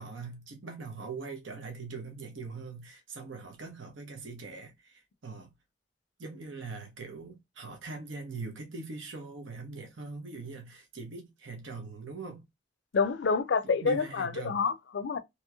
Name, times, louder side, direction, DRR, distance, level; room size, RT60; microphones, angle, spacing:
voice 1, 0.0-5.5 6.2-12.4 13.8-14.7, right 3 dB, 80° right, 0.9 m, -42 dB
voice 2, 12.9-15.2, left 5 dB, 60° left, 0.4 m, -28 dB
2.9 x 2.9 x 2.2 m
head